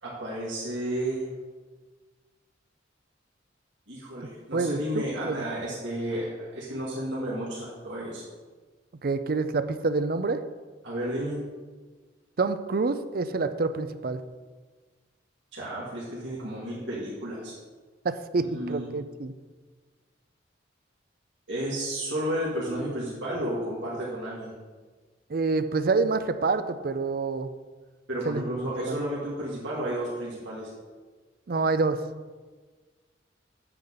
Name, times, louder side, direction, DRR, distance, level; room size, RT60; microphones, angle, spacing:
voice 1, 0.0-1.3 3.9-8.2 10.8-11.4 15.5-17.6 18.4-18.9 21.5-24.5 28.1-30.7, right 1 dB, 75° right, -7 dB, 2.3 m, -32 dB
voice 2, 4.5-5.4 9.0-10.4 12.4-14.2 18.0-19.3 25.3-27.5 28.3-28.4 28.9-29.0 31.5-32.0, right 3 dB, 50° right, 11 dB, 0.5 m, -27 dB
8.9 x 7.8 x 4.0 m, 1.4 s
head